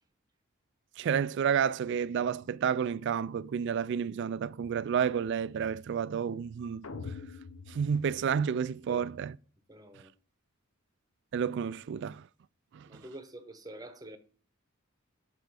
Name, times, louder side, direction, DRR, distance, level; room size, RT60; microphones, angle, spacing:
voice 1, 1.0-6.9 7.7-9.4 11.3-12.3 12.7-13.0, right 7 dB, 55° right, 0.3 m, -30 dB
sound 1, 6.8-9.0, left 4 dB, 90° left, 1.0 m, -44 dB
voice 2, 9.7-10.1 12.8-14.2, right 1 dB, 20° right, 0.9 m, -46 dB
8.1 x 4.5 x 4.8 m
head